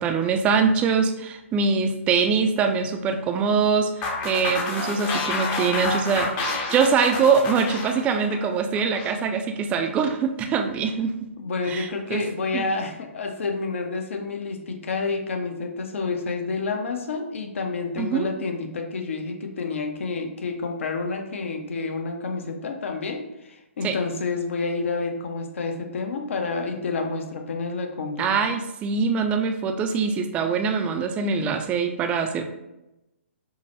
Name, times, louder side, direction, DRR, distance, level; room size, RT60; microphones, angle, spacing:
voice 1, 0.0-6.3 6.7-11.1 11.7-12.2 12.5-12.6 18.0-18.3 23.8-24.0 28.2-32.4, right 5 dB, 15° right, 6 dB, 0.3 m, -23 dB
sound 1, 4.0-9.2, left 3 dB, 25° left, 0.6 m, -29 dB
voice 2, 11.4-28.3, left 4 dB, 65° left, 4 dB, 0.6 m, -29 dB
4.6 x 2.1 x 3.0 m, 0.94 s
hypercardioid pair, 130°, 7 cm